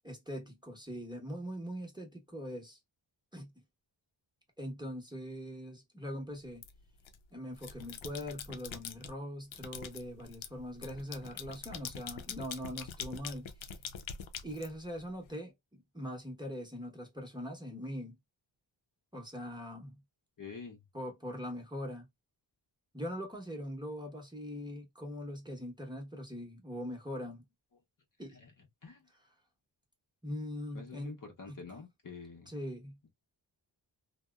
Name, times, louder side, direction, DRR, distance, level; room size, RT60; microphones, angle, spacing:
voice 1, 0.0-2.8 3.3-3.5 4.6-6.6 7.3-13.5 14.4-18.2 19.1-20.0 20.9-22.1 22.9-27.4 28.2-28.4 30.2-31.2 31.5-31.6 32.5-33.0, equal, 10° right, 0.9 m, -42 dB
sound 1, 6.6-7.2 7.5-9.1 9.5-15.3, left 7 dB, 90° left, 0.6 m, -44 dB
voice 2, 20.4-20.8 28.3-28.5 28.8-29.0 30.7-32.5, left 5 dB, 45° left, 0.7 m, -47 dB
2.6 x 2.1 x 2.2 m
wide cardioid pair, 80°, 46 cm